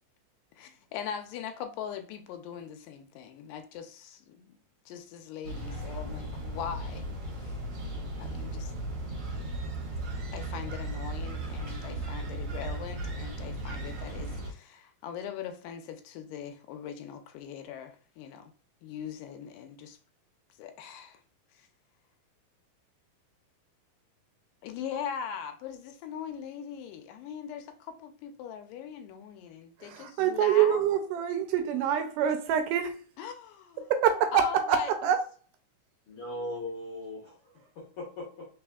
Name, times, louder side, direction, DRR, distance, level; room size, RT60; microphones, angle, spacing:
voice 1, 0.6-4.6 4.9-7.1 7.4-7.6 8.2-8.7 10.3-18.5 18.8-20.0 20.6-21.2 24.6-30.8 33.2-33.9 34.3-34.9, left 8 dB, 80° left, 2.1 m, -40 dB
sound 1, 5.4-14.5, right 1 dB, 50° right, 1.4 m, -36 dB
voice 2, 29.8-33.0 33.9-35.2, right 9 dB, 80° right, 2.0 m, -26 dB
voice 3, 36.1-38.5, left 1 dB, 65° left, 1.4 m, -39 dB
4.3 x 4.1 x 2.3 m
omnidirectional pair, 3.9 m